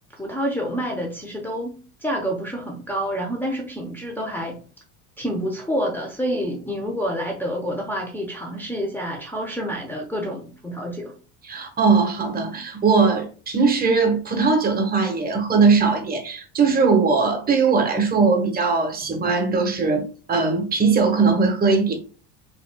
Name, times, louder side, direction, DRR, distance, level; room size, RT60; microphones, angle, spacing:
voice 1, 0.2-4.6 5.2-11.1, equal, 5° left, 0.8 m, -28 dB
voice 2, 11.5-21.9, right 4 dB, 25° right, 1.3 m, -20 dB
4.0 x 3.7 x 2.2 m
supercardioid pair, 115°, 34 cm